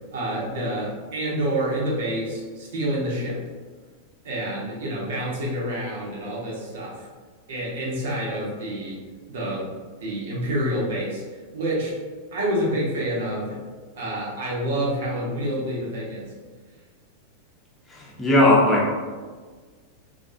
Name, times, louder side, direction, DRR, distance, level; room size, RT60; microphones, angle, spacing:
voice 1, 0.1-3.4 4.2-7.1 7.5-9.7 10.0-11.9 12.3-13.6 14.0-16.3, right 1 dB, 60° right, -4 dB, 0.8 m, -28 dB
voice 2, 17.9-18.9, left 1 dB, 10° left, -4 dB, 0.8 m, -18 dB
3.3 x 2.5 x 2.4 m, 1.5 s
figure-of-eight pair, 90°, 0 cm